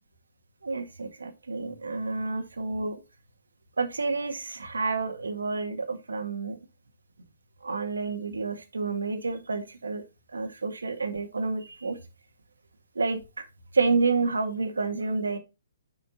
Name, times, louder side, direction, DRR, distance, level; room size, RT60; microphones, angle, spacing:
voice 1, 0.6-3.0 3.8-6.6 7.6-10.0 10.3-12.0 13.0-13.5 13.7-15.4, right 4 dB, 85° right, 6 dB, 1.7 m, -29 dB
10.0 x 5.0 x 2.9 m, 0.27 s
hypercardioid pair, 135°, 0 cm